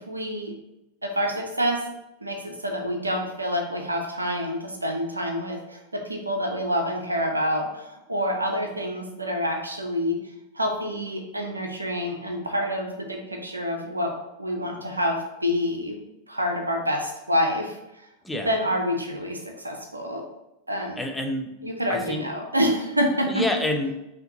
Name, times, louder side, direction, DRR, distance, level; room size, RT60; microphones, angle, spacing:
voice 1, 0.1-0.5 1.0-1.8 2.2-10.2 10.5-14.1 14.4-15.9 16.3-17.7 18.4-19.4 19.6-20.3 20.7-21.0 21.6-23.4, equal, 80° right, 2 dB, 0.6 m, -27 dB
voice 2, 20.8-22.3 23.3-24.0, left 1 dB, 5° left, 3 dB, 0.6 m, -28 dB
5.7 x 2.8 x 2.7 m, 0.92 s
figure-of-eight pair, 90°, 0 cm